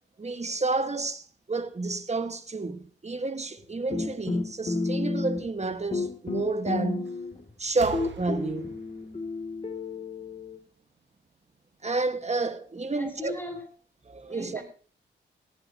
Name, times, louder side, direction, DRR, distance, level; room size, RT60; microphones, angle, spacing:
voice 1, 0.2-7.1 7.6-8.7 11.8-13.3 14.1-14.6, right 3 dB, 35° right, 1.7 m, -30 dB
sound 1, 3.9-5.6 5.9-7.5 7.9-10.6, left 3 dB, 30° left, 2.9 m, -31 dB
sound 2, 7.0-7.3 7.7-10.4 11.5-11.6, right 8 dB, 65° right, 1.4 m, -46 dB
voice 2, 12.9-13.7 14.3-14.6, left 1 dB, 10° left, 7.1 m, -38 dB
17.5 x 15.0 x 2.9 m
cardioid pair, 60°, 20 cm